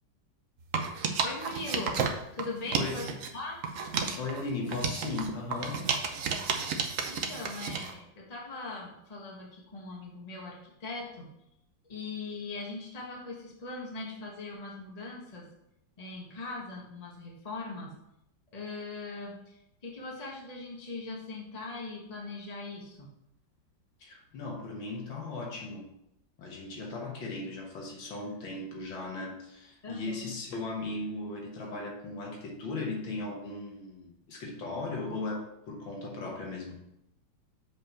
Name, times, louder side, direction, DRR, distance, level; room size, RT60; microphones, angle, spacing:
sound 1, 0.6-3.3 3.6-7.9, right 5 dB, 60° right, 0.9 m, -32 dB
voice 1, 1.2-2.0 2.3-3.6 7.1-11.3 11.9-15.5 16.0-17.9 18.5-23.1 29.8-30.3, left 3 dB, 20° left, -2 dB, 1.4 m, -40 dB
voice 2, 2.7-3.1 4.2-5.8 24.0-25.9 26.4-36.8, left 3 dB, 75° left, 0 dB, 2.1 m, -37 dB
7.2 x 5.3 x 4.4 m, 0.82 s
omnidirectional pair, 2.1 m